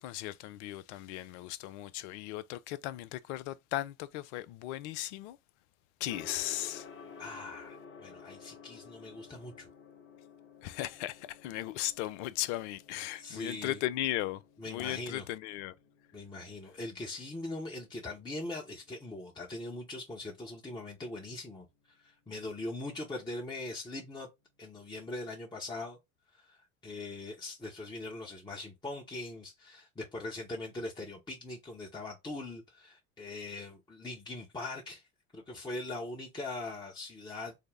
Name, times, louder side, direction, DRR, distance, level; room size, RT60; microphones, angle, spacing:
voice 1, 0.0-5.4 6.0-6.9 10.6-15.7, left 14 dB, 65° left, 0.5 m, -37 dB
Gong, 6.1-25.0, left 5 dB, 30° left, 1.1 m, -55 dB
voice 2, 7.2-9.7 13.2-13.8 14.6-15.3 16.1-24.3 24.6-26.0 26.3-35.0 35.3-37.5, left 2 dB, 10° left, 0.9 m, -41 dB
3.8 x 2.0 x 3.4 m
hypercardioid pair, 70°, 38 cm